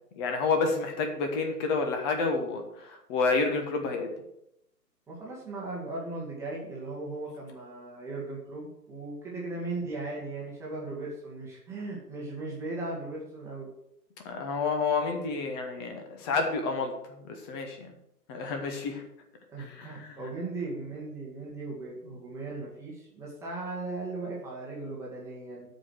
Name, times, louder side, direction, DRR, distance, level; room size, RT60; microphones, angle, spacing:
voice 1, 0.2-4.1 14.2-16.9 17.2-17.9 18.3-19.0 19.6-20.1, left 4 dB, 15° left, 4 dB, 1.1 m, -29 dB
voice 2, 5.1-13.7 19.5-25.7, right 2 dB, 5° right, -5 dB, 1.5 m, -37 dB
12.5 x 5.1 x 6.3 m, 0.79 s
figure-of-eight pair, 130°, 49 cm